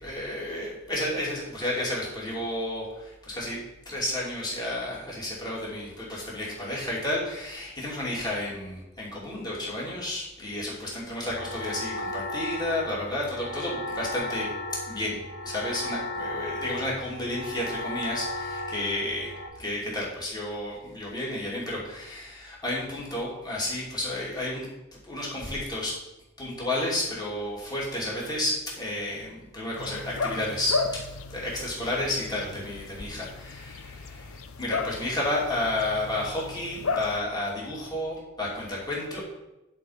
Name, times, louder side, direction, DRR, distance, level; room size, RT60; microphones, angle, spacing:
voice 1, 0.0-14.5 14.9-24.7 24.9-26.0 26.4-31.0 31.3-39.2, left 1 dB, 20° left, -6 dB, 2.7 m, -31 dB
sound 1, 11.3-19.5, left 1 dB, 60° left, 1.5 m, -35 dB
sound 2, 29.8-37.2, left 4 dB, 85° left, 0.6 m, -34 dB
9.9 x 4.5 x 5.7 m, 0.99 s
head